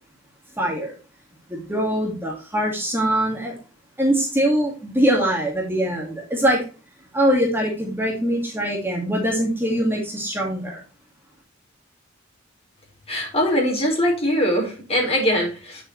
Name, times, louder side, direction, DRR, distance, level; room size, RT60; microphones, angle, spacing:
voice 1, 0.6-1.0 1.5-3.5 4.0-6.6 7.1-10.8, right 1 dB, 10° right, -2 dB, 2.4 m, -22 dB
voice 2, 13.1-15.8, equal, 30° left, 0 dB, 4.7 m, -22 dB
9.7 x 6.9 x 3.2 m, 0.34 s
head